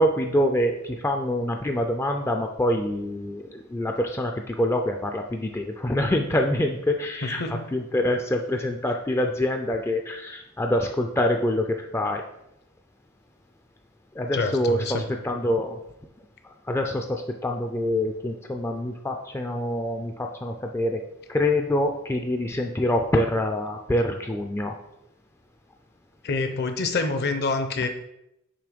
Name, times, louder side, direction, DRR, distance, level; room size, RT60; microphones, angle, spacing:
voice 1, 0.0-7.4 7.7-12.2 14.2-15.8 16.7-21.0 21.3-24.8, left 1 dB, 10° left, 3 dB, 0.3 m, -25 dB
voice 2, 14.3-15.1 26.2-27.9, left 3 dB, 50° left, 8 dB, 0.7 m, -26 dB
6.9 x 3.0 x 5.1 m, 0.83 s
head